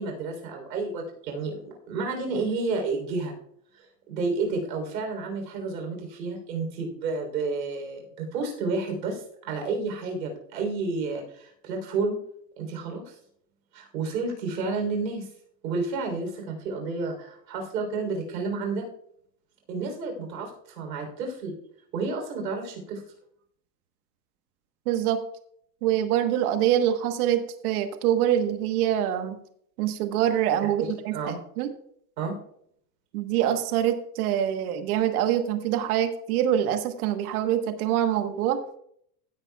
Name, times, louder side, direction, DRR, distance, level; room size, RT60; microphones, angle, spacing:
voice 1, 0.0-3.3 3.7-12.2 12.6-13.2 13.7-15.3 15.6-18.8 19.7-21.5 21.9-23.0 31.1-31.4 32.2-32.4, right 3 dB, 85° right, 3 dB, 3.6 m, -31 dB
voice 2, 24.9-25.2 25.8-29.4 29.8-31.1 31.6-31.7 33.1-38.6, right 10 dB, 60° right, 8 dB, 1.3 m, -25 dB
16.0 x 9.2 x 2.3 m, 0.68 s
hypercardioid pair, 120°, 49 cm